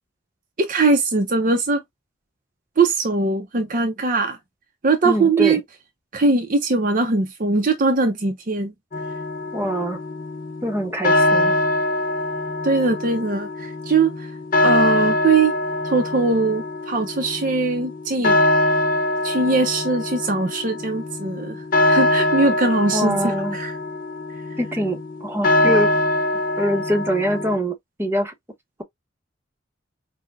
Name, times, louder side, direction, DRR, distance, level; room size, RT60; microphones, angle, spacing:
voice 1, 0.6-1.8 2.8-4.4 4.8-5.6 6.1-8.7 12.6-14.3 14.6-15.5 15.8-18.4 19.2-23.7, right 3 dB, 45° right, 0.6 m, -21 dB
voice 2, 5.0-5.6 9.5-10.0 10.6-11.5 22.9-23.6 24.6-25.9 26.3-28.3, equal, 10° right, 0.9 m, -24 dB
sound 1, 8.9-27.6, left 1 dB, 45° left, 0.7 m, -23 dB
5.7 x 2.2 x 2.4 m
head